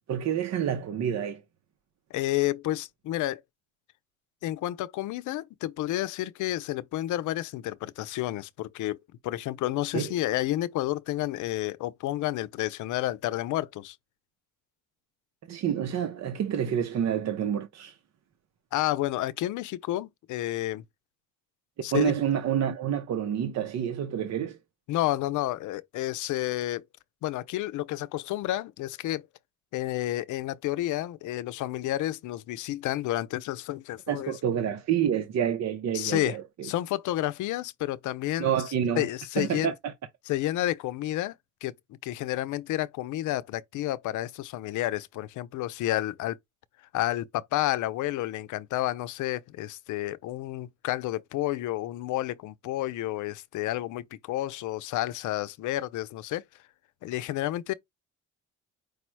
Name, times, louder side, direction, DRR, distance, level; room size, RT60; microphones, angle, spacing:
voice 1, 0.1-1.4 9.9-10.1 15.5-18.0 21.9-24.6 34.1-36.7 38.4-39.1 39.4-39.9, right 9 dB, 60° right, 0.7 m, -28 dB
voice 2, 2.1-3.4 4.4-9.0 9.2-14.0 18.7-20.8 21.8-22.1 24.9-26.8 27.2-29.2 29.7-34.3 35.9-36.4 36.6-38.5 39.0-39.7 40.3-41.3 41.6-41.7 42.0-46.4 46.9-56.4 57.0-57.7, left 15 dB, 80° left, 0.5 m, -30 dB
4.9 x 2.0 x 4.5 m
cardioid pair, 90°, 30 cm